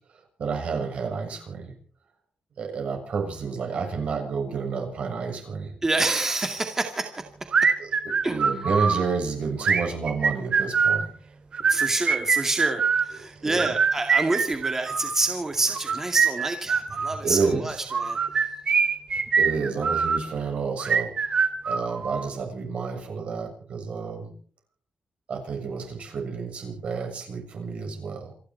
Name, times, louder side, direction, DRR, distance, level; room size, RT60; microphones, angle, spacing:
voice 1, 0.4-1.7 2.6-5.8 7.8-7.9 8.3-11.1 13.1-13.7 17.2-17.7 19.4-24.3 25.3-28.4, right 5 dB, 65° right, 4 dB, 7.1 m, -30 dB
voice 2, 5.8-7.2 8.2-8.4 11.7-18.2, right 2 dB, 20° right, 5 dB, 2.2 m, -27 dB
sound 1, 7.5-9.0 9.6-11.0 11.5-13.1 13.6-15.2 15.7-17.2 17.9-20.2 20.8-22.3, right 5 dB, 45° right, 2.9 m, -23 dB
28.0 x 11.5 x 4.5 m, 0.43 s
wide cardioid pair, 145°, 2 cm